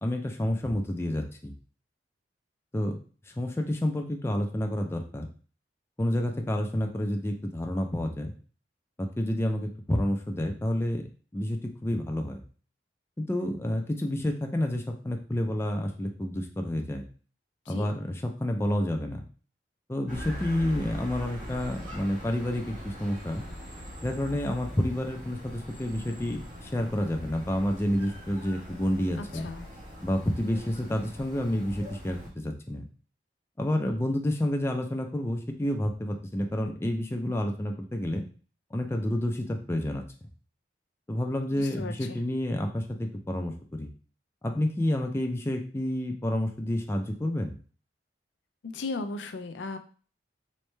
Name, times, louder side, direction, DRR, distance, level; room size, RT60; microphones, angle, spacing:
voice 1, 0.0-1.5 2.7-3.0 3.4-5.3 6.0-8.3 9.0-11.0 11.3-12.4 13.2-17.0 17.7-19.2 19.9-23.4 24.0-29.5 30.0-32.2 32.4-32.8 33.6-38.2 38.7-40.0 41.1-43.5 43.8-43.9 44.4-47.5, left 1 dB, 15° left, 3 dB, 0.4 m, -29 dB
sound 1, 20.1-32.3, equal, 45° right, 1.2 m, -42 dB
voice 2, 29.2-29.7 41.6-42.2 48.6-49.8, left 3 dB, 80° left, 7 dB, 0.4 m, -36 dB
3.2 x 3.2 x 3.2 m, 0.40 s
head